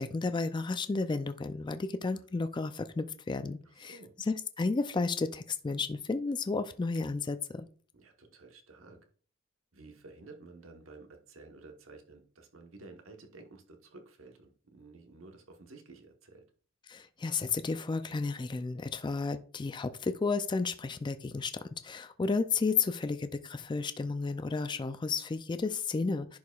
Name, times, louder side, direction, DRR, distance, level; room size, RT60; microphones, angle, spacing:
voice 1, 0.0-4.0 4.3-7.7 16.9-26.4, left 4 dB, 25° left, 0.3 m, -32 dB
voice 2, 3.6-4.1 7.9-9.0 9.7-16.4, right 3 dB, 85° right, 1.2 m, -52 dB
10.5 x 4.8 x 2.4 m
head